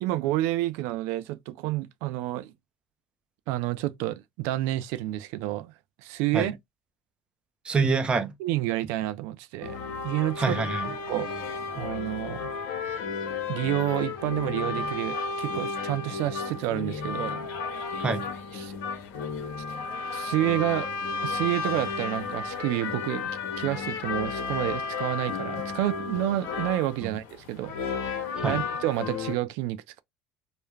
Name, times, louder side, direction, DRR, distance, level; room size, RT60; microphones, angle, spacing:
voice 1, 0.0-2.5 3.5-5.7 6.0-6.6 8.4-9.7 10.0-10.6 11.1-11.3 11.8-12.5 13.5-17.5 18.5-18.8 20.1-20.9 21.2-23.2 23.6-27.7 28.4-30.0, right 15 dB, 70° right, 0.3 m, -29 dB
voice 2, 7.6-8.3 10.4-10.9 18.0-18.3 27.0-27.1 28.4-28.6, right 4 dB, 25° right, 0.6 m, -26 dB
sound 1, 9.6-29.4, left 5 dB, 70° left, 0.7 m, -33 dB
2.3 x 2.1 x 3.1 m
supercardioid pair, 105°, 4 cm